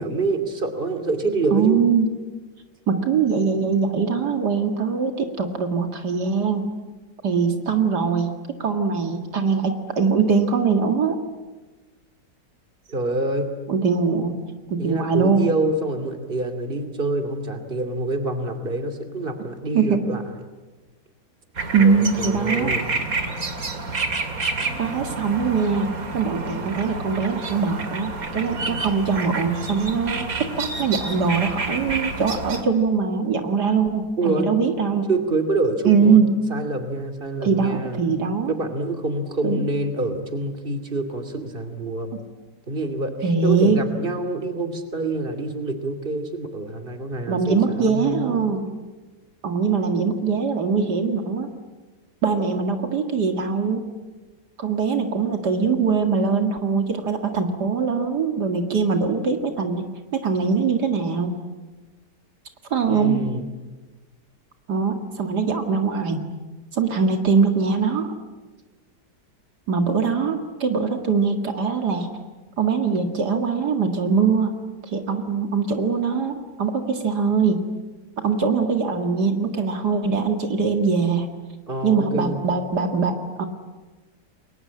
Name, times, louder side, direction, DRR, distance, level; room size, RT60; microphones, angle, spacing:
voice 1, 0.0-1.8 12.9-13.5 14.8-20.4 21.8-22.9 34.2-34.5 35.1-36.2 36.5-38.0 38.5-42.1 42.7-48.4 62.9-63.5 81.7-82.4, right 2 dB, 30° right, 8 dB, 2.9 m, -26 dB
voice 2, 1.5-2.1 2.9-6.7 7.2-8.3 8.6-11.1 13.7-14.4 14.7-15.5 19.7-20.2 21.7-22.7 24.8-35.1 35.8-36.3 37.4-38.5 39.4-39.6 43.2-43.8 47.3-48.7 49.4-51.5 52.2-53.8 54.6-59.8 60.1-61.3 62.7-63.2 64.7-66.2 66.7-68.1 69.7-72.1 72.6-74.6 74.9-77.6 78.2-81.3 81.8-83.5, right 5 dB, 70° right, 5 dB, 2.5 m, -22 dB
sound 1, 21.6-32.6, right 3 dB, 55° right, 2.8 m, -29 dB
29.5 x 22.5 x 8.7 m, 1.2 s
omnidirectional pair, 1.8 m